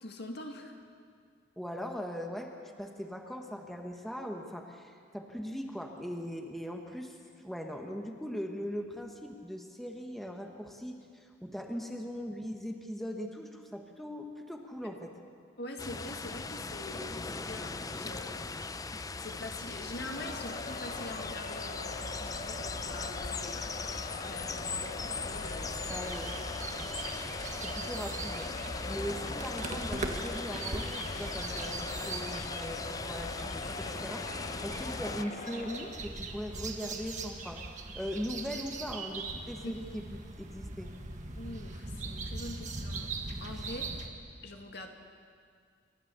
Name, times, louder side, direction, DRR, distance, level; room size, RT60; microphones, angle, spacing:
voice 1, 0.0-0.8 15.6-18.4 19.2-23.7 24.3-26.1 26.7-26.9 39.6-39.7 41.4-43.1 43.4-43.9 44.4-44.9, left 2 dB, 60° left, 3 dB, 2.1 m, -44 dB
voice 2, 1.6-2.5 2.8-7.2 7.4-15.1 25.9-26.4 27.5-40.9, equal, ahead, 2 dB, 1.3 m, -40 dB
sound 1, 15.8-35.2, left 3 dB, 20° left, 0.5 m, -39 dB
Crowd, 19.9-36.2, left 3 dB, 45° left, 1.0 m, -43 dB
sound 2, 25.3-44.1, right 3 dB, 40° right, 1.6 m, -41 dB
29.0 x 13.0 x 6.9 m, 2.1 s
head